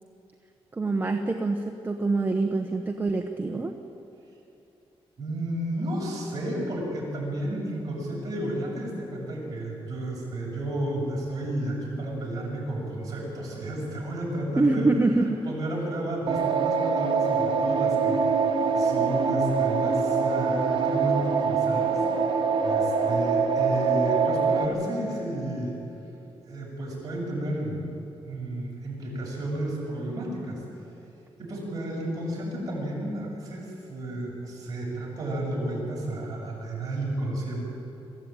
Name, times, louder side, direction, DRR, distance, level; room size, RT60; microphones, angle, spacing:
voice 1, 0.7-3.7 14.6-15.4, right 3 dB, 20° right, 3 dB, 1.0 m, -25 dB
voice 2, 5.2-14.9 15.2-22.0 22.6-25.8 26.4-27.8 28.3-30.6 31.4-37.6, right 1 dB, 35° right, -4 dB, 7.3 m, -32 dB
sound 1, 16.3-24.7, right 5 dB, 55° right, 2.0 m, -24 dB
23.0 x 14.5 x 9.0 m, 2.9 s
wide cardioid pair, 155°, 10 cm